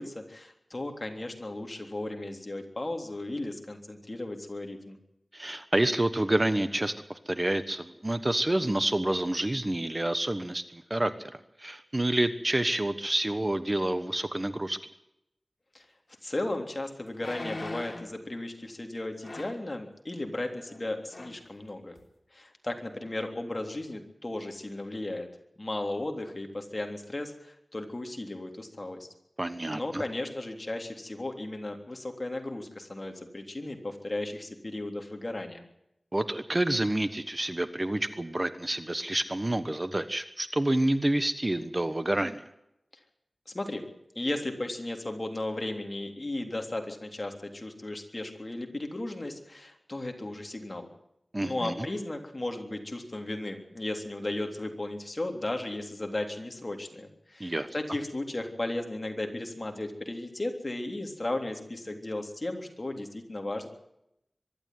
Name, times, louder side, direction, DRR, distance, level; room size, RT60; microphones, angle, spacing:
voice 1, 0.0-5.0 15.7-15.8 16.2-22.0 22.3-25.3 25.6-29.1 29.7-35.6 43.5-43.8 44.1-50.9 51.4-63.7, left 2 dB, 40° left, 4 dB, 3.4 m, -35 dB
voice 2, 5.3-14.8 29.4-30.0 36.1-42.4 51.3-51.9 57.4-57.7, right 1 dB, 30° right, 11 dB, 1.2 m, -28 dB
sound 1, 16.1-16.2 17.1-18.2 19.2-19.7 20.7-20.8 21.1-21.4 22.0-22.1, left 2 dB, 55° left, 3.4 m, -40 dB
23.5 x 12.0 x 9.4 m, 0.82 s
wide cardioid pair, 60°, 0 cm